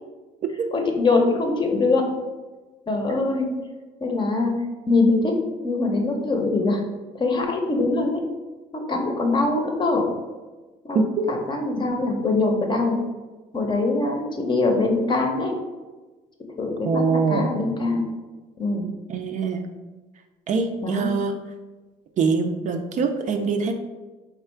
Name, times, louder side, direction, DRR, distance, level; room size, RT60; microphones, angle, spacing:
voice 1, 0.7-2.1 2.9-3.5 4.0-4.5 4.9-6.8 7.2-8.2 8.7-10.1 10.8-11.0 11.3-13.0 13.5-15.6 16.6-18.1 18.6-18.9 20.8-21.1, left 3 dB, 25° left, 3 dB, 0.6 m, -23 dB
voice 2, 10.9-11.5 16.8-17.5 19.1-19.7 20.5-21.4 22.2-23.7, right 4 dB, 45° right, 5 dB, 0.4 m, -23 dB
3.5 x 2.4 x 4.4 m, 1.3 s
cardioid pair, 110°, 17 cm